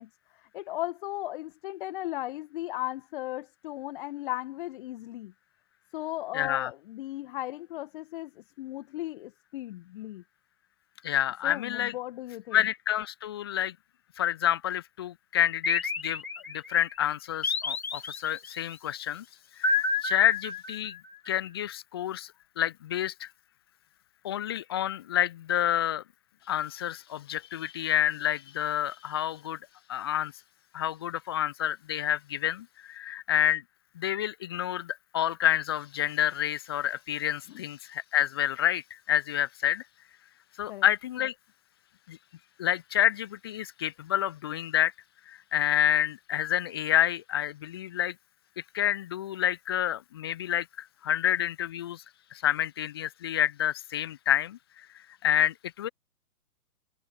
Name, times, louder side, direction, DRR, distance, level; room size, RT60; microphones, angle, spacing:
voice 1, 0.0-5.3 5.9-10.2 11.4-12.6 37.5-37.6 40.7-40.9, left 16 dB, 35° left, 1.9 m, -36 dB
voice 2, 6.3-6.7 11.0-11.9 12.5-13.7 14.2-16.2 16.5-19.2 19.6-21.0 21.3-23.3 24.2-26.0 26.5-29.6 29.9-30.3 30.7-33.6 34.0-39.8 40.6-41.3 42.1-42.2 42.6-44.9 45.3-48.1 48.7-50.7 51.0-52.0 52.3-54.6 55.2-55.9, left 11 dB, 15° left, 0.5 m, -28 dB
sound 1, 15.6-16.8 17.4-18.6 19.6-21.1, left 4 dB, 65° left, 4.1 m, -30 dB
figure-of-eight pair, 125°, 45 cm